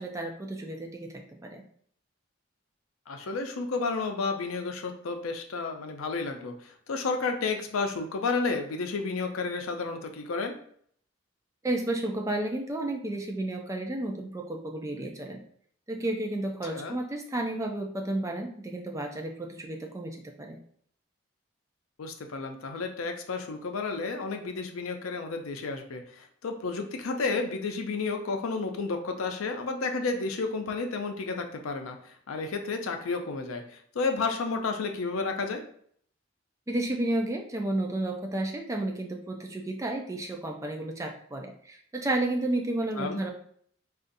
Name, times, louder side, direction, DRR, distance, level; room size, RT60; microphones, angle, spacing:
voice 1, 0.0-1.6 11.6-15.4 15.9-20.6 36.7-43.3, right 1 dB, 15° right, 2 dB, 0.3 m, -32 dB
voice 2, 3.1-10.5 16.7-17.0 22.0-32.0 32.3-35.6 42.9-43.2, left 4 dB, 90° left, 4 dB, 0.5 m, -31 dB
3.9 x 2.4 x 2.6 m, 0.63 s
head